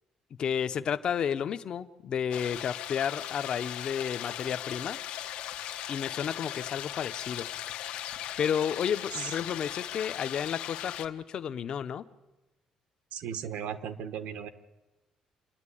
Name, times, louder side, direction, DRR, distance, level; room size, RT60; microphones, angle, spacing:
voice 1, 0.4-5.0 5.9-7.5 8.4-12.0, left 8 dB, 40° left, 10 dB, 0.7 m, -32 dB
sound 1, 2.3-11.1, left 12 dB, 85° left, 1.1 m, -38 dB
voice 2, 13.1-14.5, right 8 dB, 75° right, 11 dB, 1.3 m, -36 dB
26.5 x 10.5 x 9.9 m, 1.1 s
cardioid pair, 170°, 2 cm